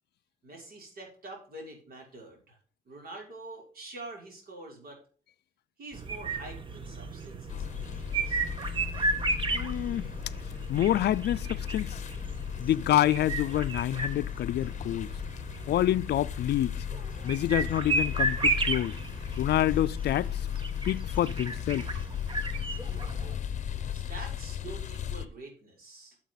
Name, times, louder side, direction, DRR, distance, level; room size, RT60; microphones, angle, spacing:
voice 1, 0.4-2.6 2.8-5.0 5.8-8.5 23.9-26.2, right 2 dB, 60° right, 6.0 m, -46 dB
sound 1, 5.9-23.4, right 3 dB, 30° right, 1.3 m, -34 dB
sound 2, 7.5-25.3, left 9 dB, 45° left, 0.8 m, -36 dB
voice 2, 9.5-10.1 10.7-12.0 12.6-15.1 15.7-16.8 17.2-19.0 19.4-20.5 20.8-21.9, left 12 dB, 80° left, 0.5 m, -27 dB
12.5 x 7.5 x 4.0 m
wide cardioid pair, 170°, 17 cm